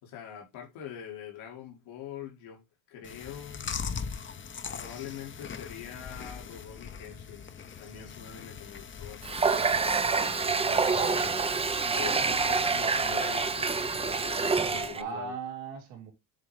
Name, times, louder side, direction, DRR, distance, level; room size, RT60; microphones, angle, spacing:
voice 1, 0.0-2.6 2.9-3.8 4.7-7.5 7.8-15.3, left 9 dB, 90° left, 2.2 m, -44 dB
Chewing mastication, 3.0-14.9, left 6 dB, 25° left, 0.6 m, -42 dB
Water tap faucet, 9.2-15.0, right 4 dB, 15° right, 0.4 m, -27 dB
voice 2, 11.8-12.4 14.9-16.1, right 6 dB, 85° right, 2.9 m, -39 dB
7.5 x 3.2 x 4.8 m
cardioid pair, 105°, 47 cm